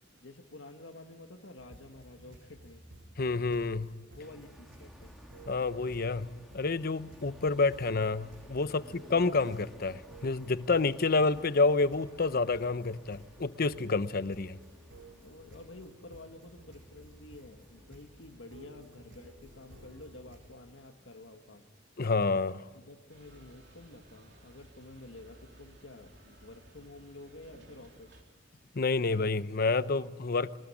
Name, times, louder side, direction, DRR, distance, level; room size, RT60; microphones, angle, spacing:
voice 1, 0.2-2.9 4.2-5.2 8.6-8.9 15.2-21.7 22.7-28.1, left 2 dB, 80° left, 1.7 m, -50 dB
sound 1, 1.6-20.4, right 1 dB, 90° right, 6.7 m, -54 dB
voice 2, 3.2-3.9 5.5-6.3 6.5-14.6 22.0-22.6 28.7-30.6, left 3 dB, 55° left, 0.8 m, -29 dB
sound 2, 4.2-20.7, equal, ahead, 2.7 m, -58 dB
sound 3, 23.1-28.2, right 1 dB, 65° right, 3.6 m, -57 dB
23.5 x 20.0 x 9.9 m
head